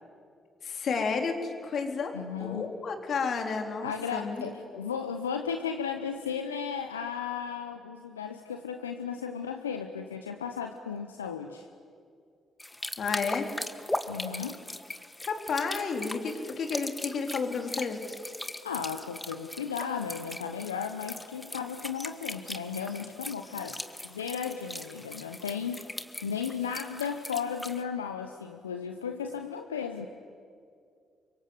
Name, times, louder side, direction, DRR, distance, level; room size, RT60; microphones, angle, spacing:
voice 1, 0.6-4.4 4.7-4.8 13.0-13.5 15.2-18.0, left 5 dB, 55° left, 4 dB, 3.8 m, -31 dB
voice 2, 2.1-2.7 3.8-11.7 14.1-14.6 18.6-25.9 26.2-30.1, left 7 dB, 90° left, 6 dB, 0.9 m, -35 dB
sound 1, 12.6-27.8, left 1 dB, 15° left, 1.9 m, -39 dB
30.0 x 24.5 x 7.9 m, 2.3 s
hypercardioid pair, 45°, 0 cm